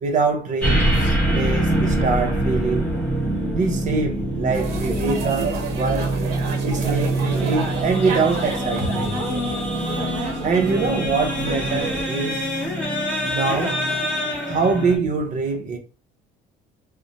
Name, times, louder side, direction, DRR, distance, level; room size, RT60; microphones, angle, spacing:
voice 1, 0.0-2.9 3.5-6.2 6.6-9.2 10.4-12.8 13.3-14.0 14.5-15.8, right 4 dB, 50° right, 0.6 m, -24 dB
sound 1, 0.6-15.0, right 1 dB, 10° left, 0.8 m, -24 dB
sound 2, 4.5-12.0, right 3 dB, 85° right, 0.7 m, -30 dB
2.6 x 2.1 x 2.7 m
cardioid pair, 110°, 17 cm